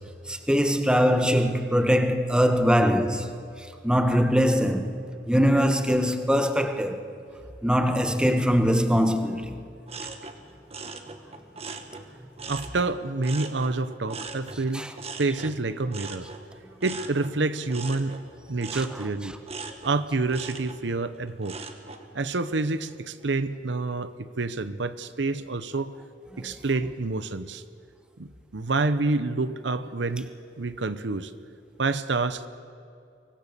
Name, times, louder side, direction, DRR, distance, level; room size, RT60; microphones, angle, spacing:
voice 1, 0.3-3.3 3.8-4.9 5.3-7.0 7.6-9.6 14.7-14.9 18.7-18.9 26.3-26.4, equal, 5° right, 1.2 m, -22 dB
sound 1, 9.9-12.9 13.2-22.1 22.5-23.0, right 4 dB, 35° right, 1.5 m, -40 dB
voice 2, 12.5-14.9 15.2-16.3 16.8-18.2 18.5-19.4 19.8-21.6 22.1-25.9 26.4-27.6 28.2-30.3 30.6-31.3 31.8-32.5, right 3 dB, 80° right, 0.9 m, -28 dB
24.5 x 19.0 x 6.9 m
head